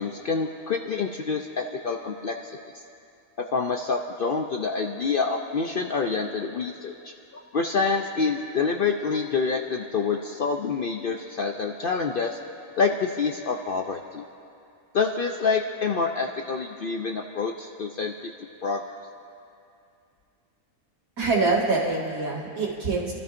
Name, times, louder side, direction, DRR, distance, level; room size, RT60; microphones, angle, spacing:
voice 1, 0.0-2.6 3.5-6.9 7.5-12.4 12.8-14.2 14.9-18.1 18.6-18.8, left 4 dB, 60° left, 3 dB, 0.6 m, -27 dB
voice 2, 21.2-23.1, right 3 dB, 80° right, -5 dB, 2.5 m, -25 dB
28.5 x 13.0 x 2.6 m, 2.5 s
omnidirectional pair, 1.5 m